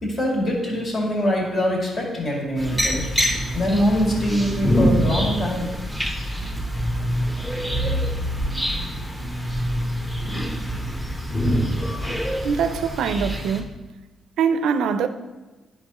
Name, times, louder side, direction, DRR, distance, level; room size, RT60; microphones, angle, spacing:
voice 1, 0.0-3.1 3.5-5.7, equal, 45° left, 2.2 m, -23 dB
sound 1, 2.6-13.6, equal, 15° left, 1.1 m, -25 dB
voice 2, 12.4-13.7 14.4-15.1, right 6 dB, 80° right, 0.4 m, -23 dB
10.5 x 5.4 x 3.0 m
cardioid pair, 90°, 0 cm